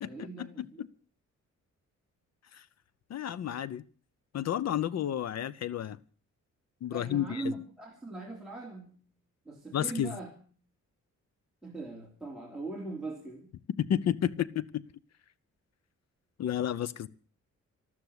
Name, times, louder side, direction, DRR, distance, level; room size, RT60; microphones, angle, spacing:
voice 1, 0.0-0.8 6.9-9.0 9.4-10.3 11.6-13.5, right 2 dB, ahead, -3 dB, 3.2 m, -40 dB
voice 2, 3.1-3.8 4.3-6.0 6.8-7.4 9.7-10.1 13.8-14.8 16.4-17.1, left 10 dB, 60° left, 18 dB, 0.8 m, -31 dB
13.5 x 13.0 x 8.1 m, 0.43 s
cardioid pair, 135°, 30 cm